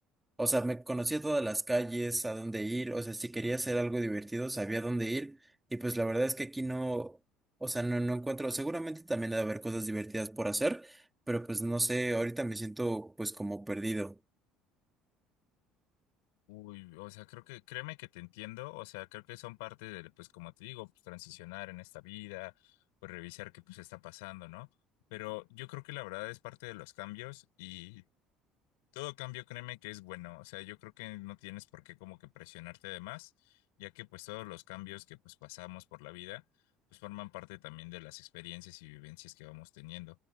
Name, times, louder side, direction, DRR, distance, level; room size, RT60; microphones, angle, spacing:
voice 1, 0.4-5.4 5.7-7.2 7.6-14.2, right 2 dB, 10° right, 3.2 m, -33 dB
voice 2, 16.5-22.7 23.0-24.7 25.1-28.1 28.9-33.3 33.8-36.4 36.9-40.2, left 25 dB, 90° left, 5.5 m, -45 dB
supercardioid pair, 95°, 0 cm